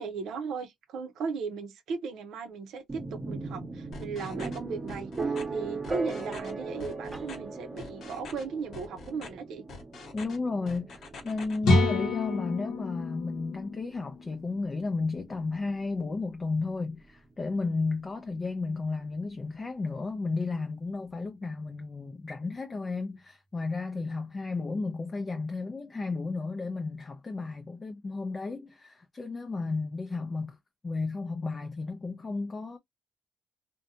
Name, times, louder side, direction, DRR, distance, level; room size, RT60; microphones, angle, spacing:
voice 1, 0.0-9.6, right 5 dB, 80° right, 0.6 m, -37 dB
sound 1, 2.9-16.7, right 3 dB, 25° right, 0.8 m, -39 dB
sound 2, 3.9-4.6 4.9-5.4 5.8-6.5 6.8-7.4 7.8-8.4 8.7-9.3 9.7-10.4 10.7-11.6, left 4 dB, 65° left, 0.9 m, -44 dB
voice 2, 10.1-30.6 30.8-32.8, left 3 dB, 30° left, 0.4 m, -33 dB
sound 3, 11.6-15.4, left 2 dB, 90° left, 0.7 m, -28 dB
2.7 x 2.1 x 2.6 m
cardioid pair, 90°, 0 cm